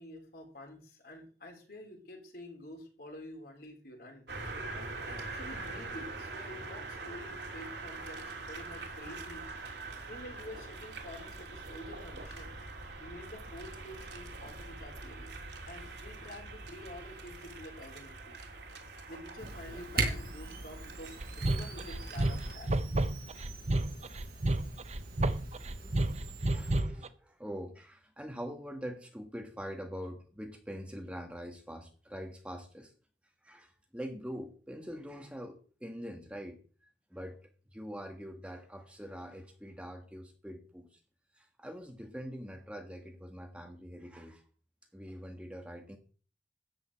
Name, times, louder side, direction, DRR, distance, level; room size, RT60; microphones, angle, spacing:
voice 1, 0.0-4.3 4.7-9.5 10.1-12.5 13.0-15.3 15.7-18.4 19.1-22.8, left 1 dB, 60° left, 2 dB, 4.5 m, -48 dB
sound 1, 4.3-22.6, right 3 dB, 75° right, 2.8 m, -44 dB
Camera, 19.4-26.8, right 3 dB, 60° right, 4.7 m, -40 dB
sound 2, 21.2-27.1, right 2 dB, 40° right, 0.8 m, -31 dB
voice 2, 25.8-26.1 26.5-32.9 33.4-36.6 37.1-37.4 37.7-41.0 41.3-44.4 44.9-46.0, equal, 5° right, 4 dB, 1.6 m, -44 dB
13.5 x 5.4 x 8.9 m, 0.40 s
head